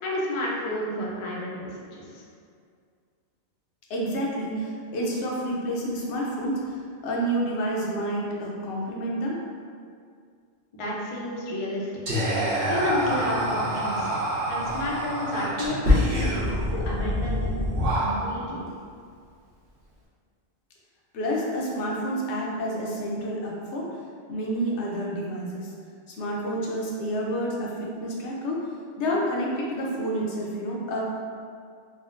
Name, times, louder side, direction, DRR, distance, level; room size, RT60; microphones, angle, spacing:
voice 1, 0.0-1.7 2.1-2.2 10.7-12.2 12.7-14.1 14.5-17.5 17.9-18.6, left 1 dB, 55° left, -4 dB, 0.3 m, -31 dB
voice 2, 3.9-9.4 21.1-24.0 24.3-25.7 26.1-28.7 29.0-31.0, equal, 80° left, -3 dB, 0.9 m, -29 dB
Whispering, 12.1-18.5, equal, 60° right, 0.8 m, -26 dB
3.6 x 2.0 x 2.5 m, 2.2 s
omnidirectional pair, 1.2 m